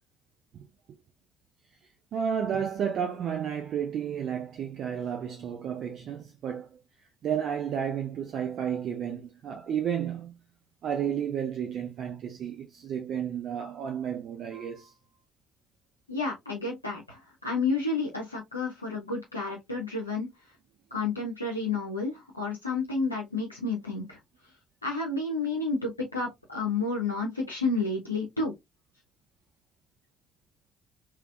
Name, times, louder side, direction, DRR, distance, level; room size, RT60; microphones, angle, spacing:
voice 1, 2.1-6.8 7.2-10.4 10.8-14.9, right 8 dB, 50° right, 0.6 m, -32 dB
voice 2, 16.1-20.3 20.9-24.2 24.8-28.5, left 3 dB, 85° left, 0.6 m, -30 dB
3.3 x 3.1 x 2.3 m
figure-of-eight pair, 50°, 0 cm